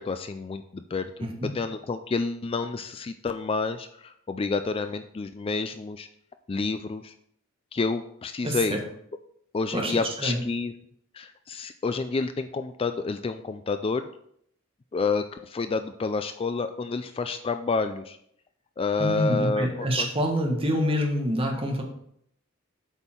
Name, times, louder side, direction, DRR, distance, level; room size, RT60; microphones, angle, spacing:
voice 1, 0.0-1.1 1.5-6.1 6.5-7.1 7.7-8.8 9.5-10.7 11.1-14.1 14.9-18.2 18.8-20.1, left 4 dB, 25° left, 9 dB, 0.3 m, -29 dB
voice 2, 8.4-8.8 9.7-10.4 19.0-21.8, equal, 30° right, 1 dB, 1.6 m, -26 dB
8.1 x 5.5 x 4.5 m, 0.70 s
head